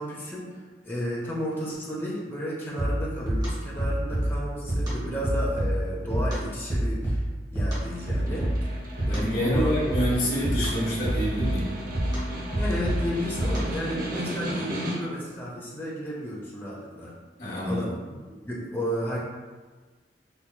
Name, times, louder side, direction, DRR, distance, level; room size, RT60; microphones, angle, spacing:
voice 1, 0.0-7.2 7.5-8.8 9.1-9.9 12.6-17.1 17.4-17.9 18.4-19.2, equal, 10° left, -6 dB, 0.6 m, -33 dB
sound 1, 2.8-13.9, right 1 dB, 25° right, 1.0 m, -28 dB
Snare drum, 7.8-15.3, equal, 50° right, 0.6 m, -35 dB
voice 2, 9.1-11.7 12.0-12.1 17.4-17.9, equal, 50° left, -7 dB, 1.2 m, -27 dB
4.4 x 2.7 x 2.2 m, 1.3 s
head